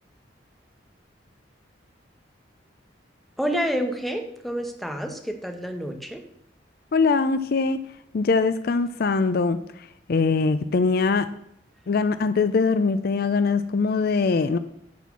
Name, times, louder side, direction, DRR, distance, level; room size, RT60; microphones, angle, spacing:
voice 1, 3.4-6.2, equal, ahead, 4 dB, 1.0 m, -28 dB
voice 2, 6.9-7.8 8.1-11.3 11.9-14.6, left 4 dB, 55° left, 12 dB, 0.4 m, -22 dB
10.5 x 4.3 x 6.9 m, 0.75 s
head